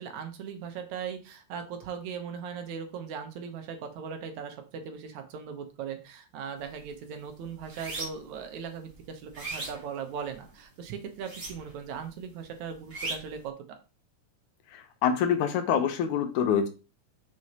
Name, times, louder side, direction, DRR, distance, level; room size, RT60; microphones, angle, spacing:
voice 1, 0.0-13.5, right 7 dB, 75° right, 6 dB, 2.4 m, -39 dB
sound 1, 6.6-6.9 7.2-8.4 8.8-10.5 11.2-11.9 12.2-13.4, right 2 dB, 25° right, 1.4 m, -38 dB
voice 2, 14.7-16.7, left 8 dB, 90° left, 7 dB, 2.4 m, -26 dB
6.3 x 6.2 x 2.9 m, 0.32 s
omnidirectional pair, 3.4 m